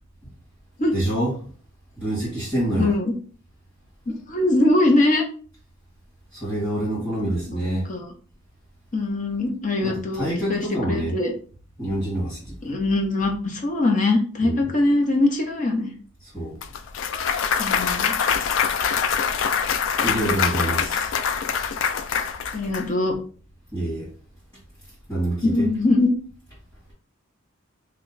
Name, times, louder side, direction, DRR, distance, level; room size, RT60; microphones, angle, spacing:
voice 1, 0.9-1.3 2.0-2.9 6.3-7.9 9.8-11.2 11.8-12.5 14.4-14.6 16.3-16.6 20.0-21.1 23.7-24.1 25.1-25.6, right 1 dB, 10° left, 1.5 m, -26 dB
voice 2, 2.8-3.1 4.1-5.2 6.9-7.1 7.5-8.1 8.9-11.3 12.6-15.9 17.6-18.1 22.5-23.1 25.4-26.1, left 2 dB, 40° left, 0.6 m, -22 dB
Clapping / Cheering / Applause, 16.6-22.8, left 7 dB, 70° left, 0.3 m, -24 dB
2.8 x 2.1 x 3.9 m
head